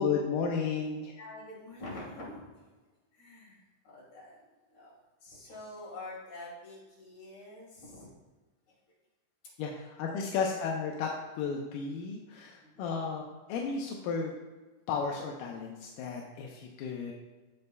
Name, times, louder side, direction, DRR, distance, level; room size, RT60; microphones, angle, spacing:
voice 1, 0.0-1.2 9.6-11.1 11.4-13.2 13.5-14.3 14.9-17.1, left 5 dB, 75° left, 0 dB, 2.0 m, -33 dB
voice 2, 1.2-2.7 3.1-4.4 4.7-4.9 5.2-8.1 12.6-12.9, left 2 dB, 50° left, -6 dB, 3.7 m, -46 dB
15.0 x 5.4 x 2.3 m, 1.3 s
omnidirectional pair, 4.3 m